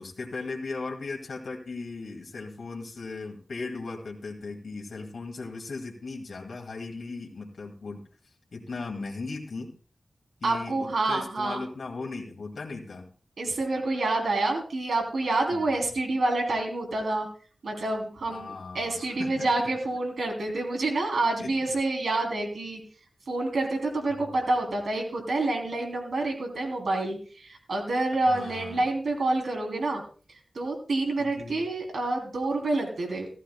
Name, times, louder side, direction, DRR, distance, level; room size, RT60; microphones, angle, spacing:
voice 1, 0.0-9.8 10.4-13.1 15.5-15.7 18.3-19.5 20.5-20.6 21.4-21.6 24.1-24.3 28.1-28.8 31.2-31.6, left 3 dB, 90° left, 1 dB, 1.9 m, -38 dB
voice 2, 10.4-11.6 13.4-17.3 17.6-22.8 23.3-27.2 27.5-30.0 30.5-33.3, right 2 dB, 85° right, 2 dB, 3.1 m, -28 dB
15.5 x 14.0 x 2.2 m, 0.40 s
wide cardioid pair, 100°, 0 cm